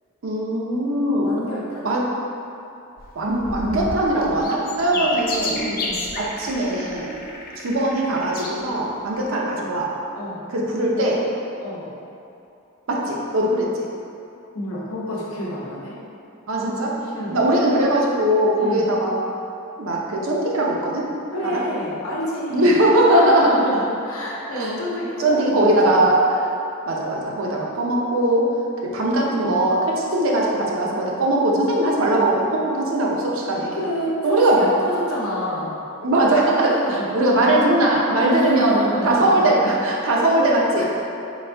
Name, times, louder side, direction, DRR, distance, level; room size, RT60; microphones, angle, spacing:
voice 1, 0.2-1.3 1.8-2.1 3.2-5.7 6.2-7.2 7.6-9.9 10.5-11.3 12.9-13.9 16.5-17.0 17.3-19.2 19.8-21.1 21.5-21.6 22.5-23.6 24.5-24.7 25.2-26.5 26.9-28.6 28.8-33.8 34.2-34.7 36.0-40.8, right 1 dB, 60° right, -2 dB, 0.6 m, -20 dB
voice 2, 1.2-1.9 4.9-5.1 5.6-6.1 9.6-9.8 10.1-10.4 11.6-11.9 14.5-16.0 17.1-17.5 18.6-18.9 21.3-22.9 23.2-26.1 29.3-29.6 33.7-35.8 36.7-37.1 38.3-39.5 40.1-40.5 40.8-40.9, equal, 75° left, -5 dB, 0.8 m, -29 dB
sound 1, 3.0-8.6 9.1-9.2, left 2 dB, 40° left, 0.4 m, -31 dB
4.0 x 2.6 x 3.3 m, 2.7 s
head